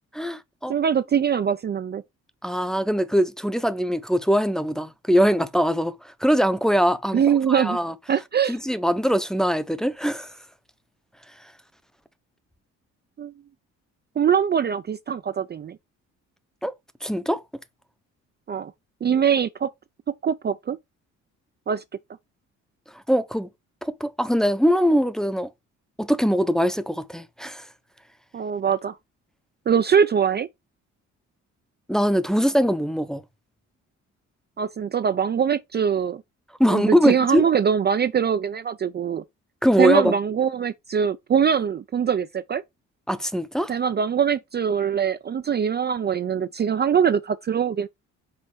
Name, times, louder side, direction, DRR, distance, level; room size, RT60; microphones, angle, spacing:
voice 1, 0.1-0.7 2.4-7.9 8.5-10.3 16.6-16.7 17.0-17.4 23.1-23.5 23.8-25.5 26.0-27.7 31.9-33.2 36.6-37.4 39.6-40.1 43.1-43.7, equal, ahead, 0.7 m, -22 dB
voice 2, 0.7-2.0 7.1-7.8 8.1-8.6 13.2-13.3 14.2-15.8 18.5-18.7 19.0-19.7 20.2-20.8 21.7-21.8 28.3-29.0 29.7-30.5 34.6-36.2 36.7-39.2 39.8-42.6 43.7-47.9, right 7 dB, 35° right, 0.5 m, -22 dB
5.7 x 3.9 x 4.8 m
cardioid pair, 90°, 30 cm